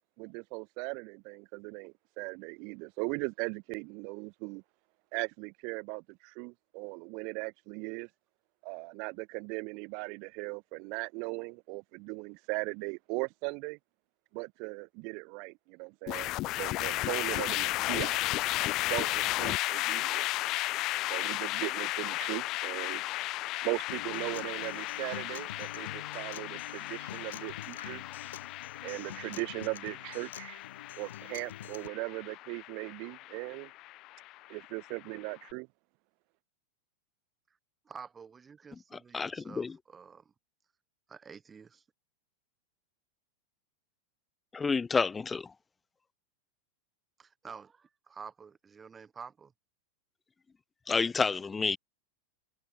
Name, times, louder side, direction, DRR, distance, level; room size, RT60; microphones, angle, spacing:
voice 1, 0.2-4.6 5.1-8.1 8.6-13.8 14.3-18.2 18.8-20.3 21.1-23.0 23.6-28.0 28.8-30.6 31.0-33.7 34.5-35.7, right 33 dB, 50° right, 1.4 m, -38 dB
sound 1, 16.1-35.3, left 18 dB, 40° left, 0.9 m, -34 dB
Acoustic guitar, 23.9-31.9, left 11 dB, 85° left, 1.7 m, -46 dB
voice 2, 37.8-40.3 41.1-41.8 47.2-49.5, right 6 dB, 15° right, 7.6 m, -49 dB
voice 3, 39.1-39.7 44.5-45.5 50.9-51.8, left 4 dB, 15° left, 1.5 m, -29 dB
supercardioid pair, 135°, 0 cm